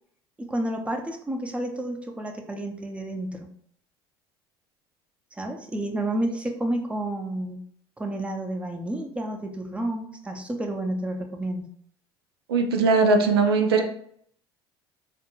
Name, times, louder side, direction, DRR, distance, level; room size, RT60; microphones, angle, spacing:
voice 1, 0.5-3.5 5.4-7.6 8.0-11.6, right 1 dB, 10° right, 3 dB, 0.5 m, -30 dB
voice 2, 12.5-13.8, right 4 dB, 90° right, 4 dB, 0.4 m, -20 dB
2.5 x 2.2 x 3.0 m, 0.64 s
hypercardioid pair, 70°, 12 cm